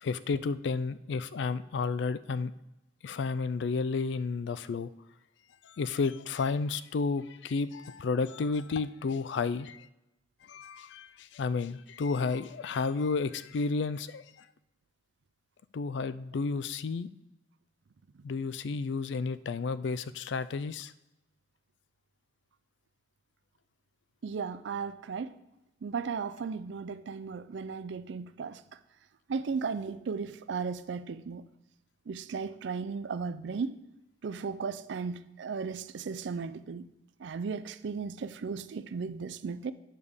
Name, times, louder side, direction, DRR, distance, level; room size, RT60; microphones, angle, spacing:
voice 1, 0.0-2.5 3.0-4.9 5.6-9.9 10.5-14.2 15.7-17.1 18.2-20.9, left 4 dB, 65° left, 0.4 m, -32 dB
voice 2, 24.2-25.3 25.8-28.6 29.3-31.4 32.1-33.8 34.2-36.9 37.2-39.7, right 5 dB, 70° right, 0.4 m, -35 dB
9.0 x 3.5 x 6.5 m
head